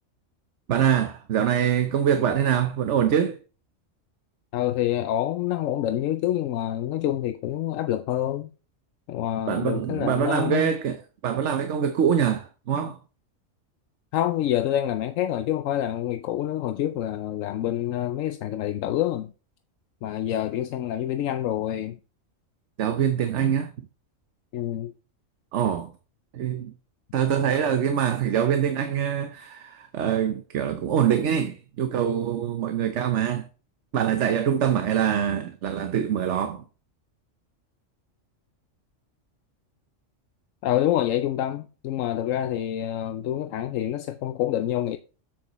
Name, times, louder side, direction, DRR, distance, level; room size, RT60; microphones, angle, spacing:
voice 1, 0.7-3.4 9.5-13.0 22.8-23.7 25.5-25.9 26.3-26.7 27.1-33.5 33.9-36.6, right 8 dB, 65° right, 1.1 m, -24 dB
voice 2, 4.5-8.5 9.1-10.7 14.1-19.3 20.0-22.0 24.5-24.9 40.6-45.0, left 12 dB, 85° left, 1.0 m, -27 dB
7.8 x 7.3 x 3.0 m
omnidirectional pair, 1.3 m